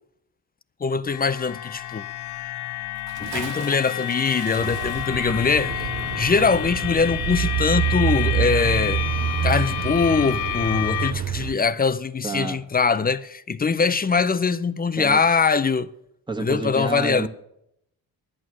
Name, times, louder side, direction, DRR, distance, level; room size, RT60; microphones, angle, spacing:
voice 1, 0.8-2.0 3.2-5.9 6.2-9.0 9.4-15.9 16.4-17.3, left 5 dB, 25° left, 0.5 m, -22 dB
sound 1, 1.1-11.1, left 14 dB, 65° left, 0.6 m, -29 dB
Bathtub (filling or washing) / Splash splatter, 2.9-7.9 8.2-8.3, right 9 dB, 65° right, 0.9 m, -41 dB
sound 2, 4.6-11.5, right 10 dB, 45° right, 0.6 m, -27 dB
voice 2, 12.2-12.6 15.0-15.2 16.3-17.3, right 3 dB, 10° right, 1.6 m, -29 dB
11.0 x 8.7 x 6.2 m
cardioid pair, 70°, 40 cm